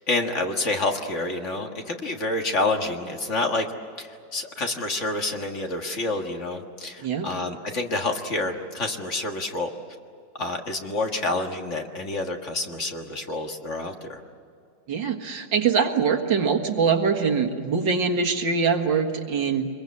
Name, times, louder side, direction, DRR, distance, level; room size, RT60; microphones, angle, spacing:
voice 1, 0.1-3.7 4.0-9.7 10.4-14.2, left 2 dB, 40° left, 3 dB, 1.9 m, -28 dB
voice 2, 14.9-19.7, right 5 dB, 90° right, 5 dB, 2.4 m, -23 dB
25.0 x 22.0 x 8.5 m, 2.4 s
omnidirectional pair, 2.0 m